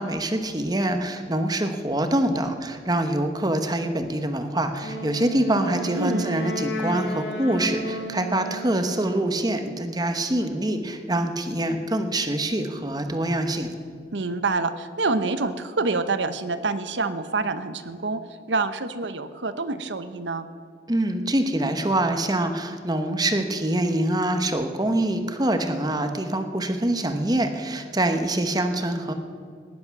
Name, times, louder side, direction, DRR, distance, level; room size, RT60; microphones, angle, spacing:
voice 1, 0.0-13.7 20.9-29.1, right 1 dB, 20° right, 7 dB, 1.0 m, -25 dB
Wind instrument woodwind instrument, 4.8-9.0, right 1 dB, 80° left, 2.2 m, -33 dB
voice 2, 14.1-18.2 18.5-20.5, right 3 dB, 85° right, 11 dB, 0.9 m, -26 dB
17.5 x 10.5 x 6.0 m, 2.2 s
head